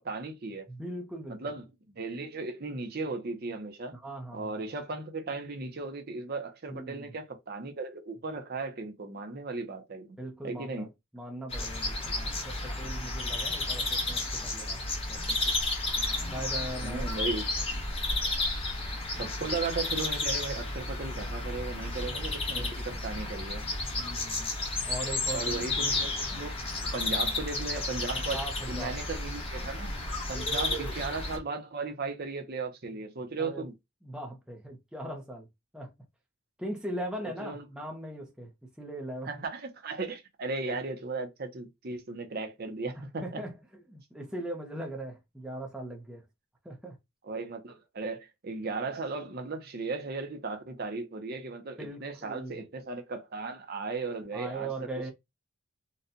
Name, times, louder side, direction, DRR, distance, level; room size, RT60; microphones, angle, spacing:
voice 1, 0.0-0.6 1.4-1.6 2.0-3.9 4.3-10.2 10.4-10.9 16.8-17.4 19.2-23.6 25.3-26.6 26.9-28.4 28.7-29.9 30.3-33.7 37.2-37.6 39.3-43.4 47.2-54.7, right 3 dB, 45° right, 0.7 m, -36 dB
voice 2, 0.7-1.5 3.9-4.5 6.7-7.1 10.2-14.8 15.1-15.6 16.3-17.1 19.2-19.3 22.5-23.0 24.0-24.5 24.9-25.7 28.3-29.0 33.4-33.7 34.0-35.5 35.7-35.9 36.6-38.5 38.8-39.3 43.2-43.5 43.9-46.2 46.6-47.0 51.8-52.6 54.3-55.1, right 1 dB, 5° right, 0.5 m, -40 dB
sound 1, 11.5-31.4, left 2 dB, 25° left, 0.9 m, -32 dB
4.1 x 2.2 x 2.6 m
head